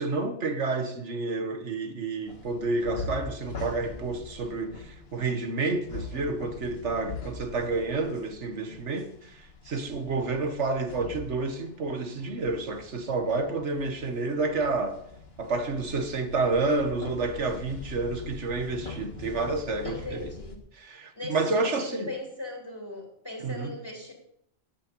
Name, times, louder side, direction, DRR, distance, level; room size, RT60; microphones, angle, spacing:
voice 1, 0.0-15.0 15.4-20.3 20.7-22.1 23.4-23.7, right 3 dB, 90° right, 1.7 m, -29 dB
sound 1, 2.3-20.6, left 3 dB, 60° left, 2.0 m, -43 dB
voice 2, 19.8-20.6 21.1-24.1, left 2 dB, 20° left, 3.1 m, -39 dB
12.5 x 8.8 x 5.3 m
omnidirectional pair, 1.2 m